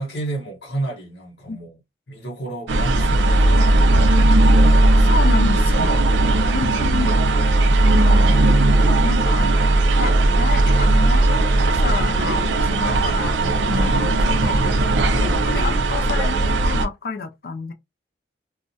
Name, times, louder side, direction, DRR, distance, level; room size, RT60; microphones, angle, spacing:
voice 1, 0.0-1.8 2.1-3.8 6.1-6.6 12.8-13.1, right 2 dB, 75° left, 0.9 m, -31 dB
sound 1, 2.7-16.9, right 2 dB, 80° right, 0.5 m, -17 dB
voice 2, 5.0-6.0 6.5-7.1 7.9-8.5 9.0-9.5 9.9-13.3 13.7-14.6 15.2-17.7, left 4 dB, 55° left, 0.4 m, -29 dB
2.3 x 2.1 x 2.6 m
head